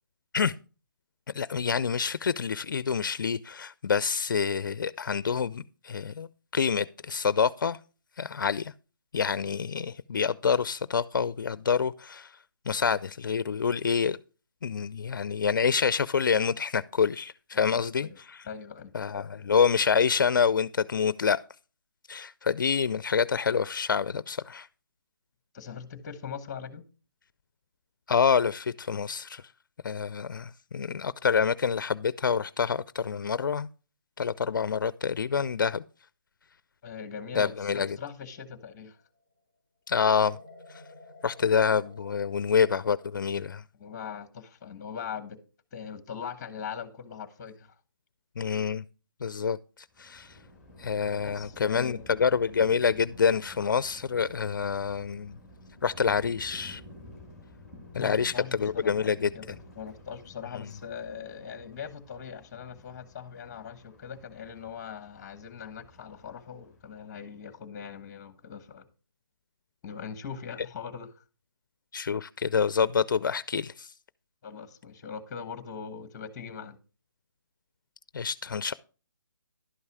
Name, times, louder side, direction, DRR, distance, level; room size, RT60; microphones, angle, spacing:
voice 1, 1.3-7.8 8.2-8.7 9.1-12.4 12.7-14.2 14.6-18.5 18.9-21.4 22.1-24.7 28.1-29.4 29.8-33.7 34.2-35.8 37.3-38.0 39.9-40.4 40.7-40.8 41.2-43.6 48.4-48.8 49.2-49.6 50.0-50.4 50.8-55.4 55.8-56.8 57.9-59.6 71.9-73.9 78.1-78.7, left 6 dB, 60° left, 0.4 m, -27 dB
voice 2, 17.5-18.2 18.5-18.9 25.5-26.8 36.8-39.0 43.8-45.4 45.7-47.7 51.1-52.1 57.9-68.8 69.8-71.1 74.4-76.8, left 7 dB, 20° left, 1.1 m, -41 dB
sound 1, 37.9-39.2 40.3-43.1, left 2 dB, 65° right, 4.7 m, -52 dB
Thunder, 49.9-67.3, left 1 dB, 5° right, 1.8 m, -52 dB
11.5 x 5.5 x 4.8 m
hypercardioid pair, 165°, 12 cm